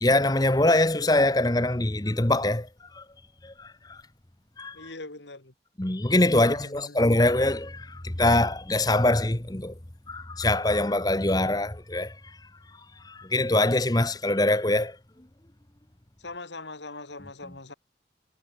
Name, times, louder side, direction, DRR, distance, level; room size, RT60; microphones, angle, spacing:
voice 1, 0.0-2.7 2.9-3.0 3.4-4.0 4.6-4.9 5.8-9.7 10.1-12.4 13.0-15.0, left 1 dB, 20° left, 1.1 m, -23 dB
voice 2, 4.7-5.5 6.3-7.0 16.2-17.7, left 2 dB, 85° left, 3.1 m, -41 dB
head